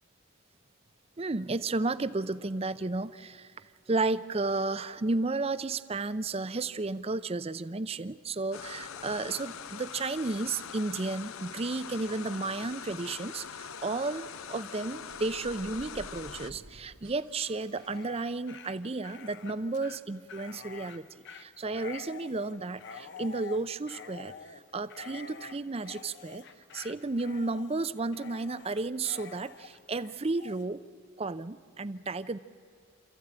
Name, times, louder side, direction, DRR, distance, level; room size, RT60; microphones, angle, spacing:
voice 1, 1.2-21.1 21.3-26.5 26.7-30.8 31.2-32.4, right 3 dB, 30° right, 14 dB, 0.6 m, -33 dB
sound 1, 8.5-16.5, left 7 dB, 90° left, 0.7 m, -43 dB
sound 2, 15.0-19.0, right 1 dB, 90° right, 3.0 m, -52 dB
Dog, 17.6-30.7, left 5 dB, 55° left, 1.0 m, -48 dB
27.0 x 14.5 x 8.8 m, 2.3 s
head